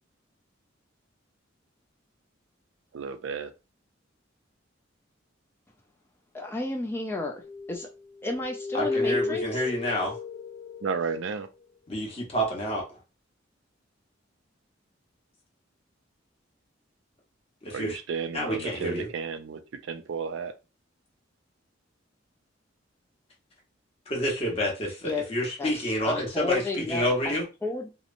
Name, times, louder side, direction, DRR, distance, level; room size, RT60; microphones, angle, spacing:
voice 1, 2.9-3.5 10.8-11.5 17.7-19.6 19.9-20.5, right 5 dB, 70° right, 0.4 m, -32 dB
voice 2, 6.3-7.3 7.7-7.9 8.2-9.6 25.0-25.3 25.6-27.9, left 2 dB, 10° left, 0.3 m, -33 dB
sound 1, 7.4-7.9 8.2-11.3, left 3 dB, 80° left, 0.5 m, -33 dB
voice 3, 8.7-10.1 11.9-12.8 17.6-18.0 18.3-19.1 24.1-27.4, equal, 30° left, 0.9 m, -28 dB
2.8 x 2.0 x 2.6 m
head